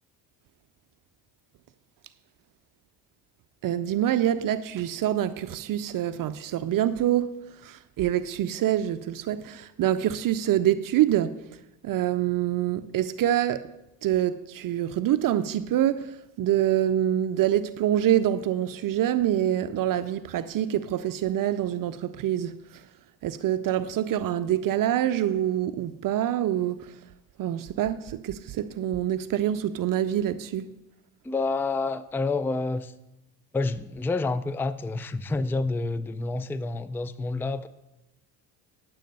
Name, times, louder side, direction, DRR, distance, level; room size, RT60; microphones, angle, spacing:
voice 1, 3.6-7.3 7.6-11.4 11.8-13.7 14.0-22.8 23.2-26.9 27.4-30.7, right 11 dB, 55° right, 0.6 m, -26 dB
voice 2, 31.2-32.9 33.5-37.7, left 3 dB, 5° left, 0.4 m, -28 dB
10.0 x 7.7 x 5.3 m
supercardioid pair, 70°, 41 cm